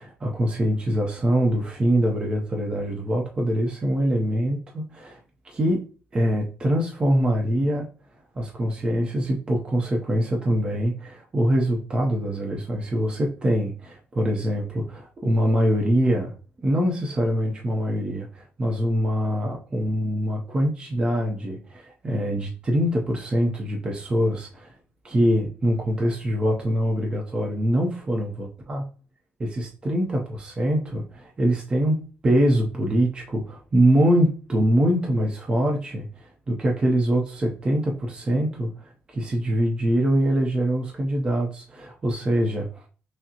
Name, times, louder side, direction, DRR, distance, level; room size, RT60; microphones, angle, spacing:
voice 1, 0.0-5.2 5.4-5.8 6.1-7.9 8.3-16.3 16.6-24.7 25.0-28.8 29.4-42.8, equal, 20° right, 0 dB, 0.6 m, -24 dB
5.8 x 2.0 x 2.8 m, 0.38 s
cardioid pair, 175°, 4 cm